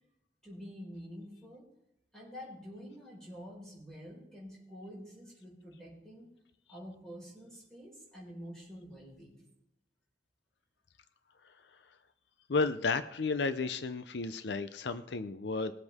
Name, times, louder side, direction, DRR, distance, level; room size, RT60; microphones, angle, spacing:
voice 1, 0.4-1.7 2.1-6.3 6.7-9.4, equal, 5° left, -5 dB, 4.8 m, -48 dB
voice 2, 12.5-15.7, left 4 dB, 80° left, 11 dB, 0.6 m, -32 dB
20.5 x 8.0 x 3.6 m, 0.82 s
head